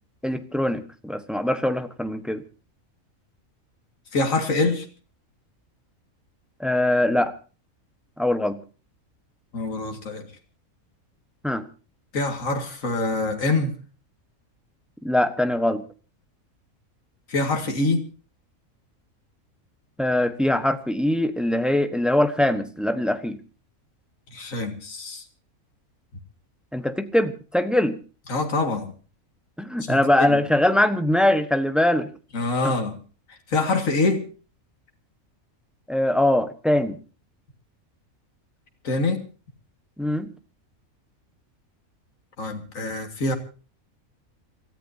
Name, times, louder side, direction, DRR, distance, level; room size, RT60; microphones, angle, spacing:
voice 1, 0.2-2.4 6.6-7.3 8.2-8.6 11.4-11.6 15.0-15.8 20.0-23.4 26.7-28.0 29.6-32.1 32.6-32.7 35.9-37.0 40.0-40.3, left 1 dB, ahead, 9 dB, 1.1 m, -22 dB
voice 2, 4.1-4.9 9.5-10.3 12.1-13.7 17.3-18.0 24.3-25.2 28.3-28.9 29.8-30.4 32.3-33.0 33.5-34.2 38.8-39.2 42.4-43.4, left 3 dB, 70° left, 4 dB, 2.4 m, -25 dB
28.5 x 14.0 x 2.8 m, 0.35 s
omnidirectional pair, 1.4 m